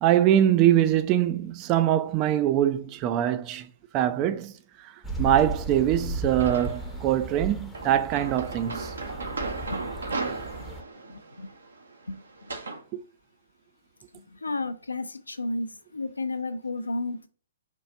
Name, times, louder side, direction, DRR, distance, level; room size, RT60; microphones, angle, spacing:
voice 1, 0.0-4.5 4.8-4.9 5.2-8.9 12.9-13.0, right 11 dB, 25° right, 0.3 m, -23 dB
sound 1, 5.0-10.8, right 2 dB, 5° left, 0.7 m, -35 dB
sound 2, 6.4-7.0 7.7-12.8, right 3 dB, 65° right, 0.7 m, -36 dB
voice 2, 9.7-10.2 10.6-10.7 11.1-11.5 12.1-12.6 14.1-17.3, left 2 dB, 75° left, 0.5 m, -33 dB
4.5 x 2.4 x 4.0 m
figure-of-eight pair, 120°, 0 cm